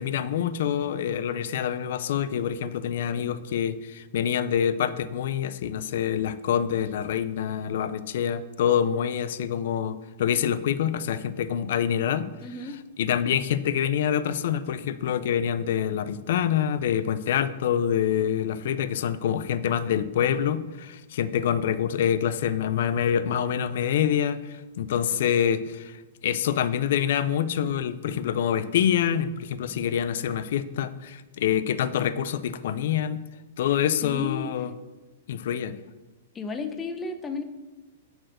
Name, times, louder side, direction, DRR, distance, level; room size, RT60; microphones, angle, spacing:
voice 1, 0.0-33.2 33.6-34.7 35.3-35.8, left 9 dB, 65° left, 14 dB, 0.5 m, -26 dB
voice 2, 12.4-12.8 34.0-34.5 36.3-37.4, left 4 dB, 15° left, 7 dB, 0.8 m, -33 dB
7.5 x 4.5 x 6.5 m, 1.2 s
hypercardioid pair, 140°, 0 cm